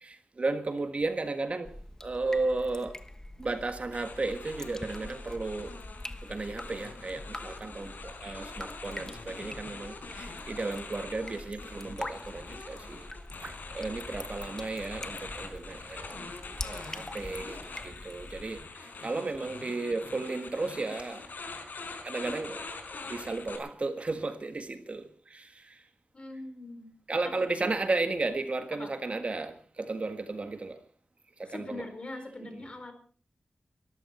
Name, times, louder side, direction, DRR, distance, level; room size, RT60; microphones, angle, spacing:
voice 1, 0.0-1.7 2.0-3.0 3.4-5.7 6.3-13.0 13.4-16.3 16.6-18.6 19.0-21.2 22.0-22.6 23.1-25.0 25.3-25.4 27.1-30.8 31.4-31.9 32.4-32.6, right 3 dB, 45° right, 1.7 m, -34 dB
Drip, 1.6-18.6, left 1 dB, 20° left, 1.1 m, -44 dB
sound 1, 3.9-23.6, left 3 dB, 85° left, 4.6 m, -44 dB
voice 2, 26.1-27.0 27.6-27.7 28.7-28.9 31.5-32.9, left 2 dB, 40° left, 4.4 m, -42 dB
23.5 x 14.0 x 4.5 m
wide cardioid pair, 115°, 3 cm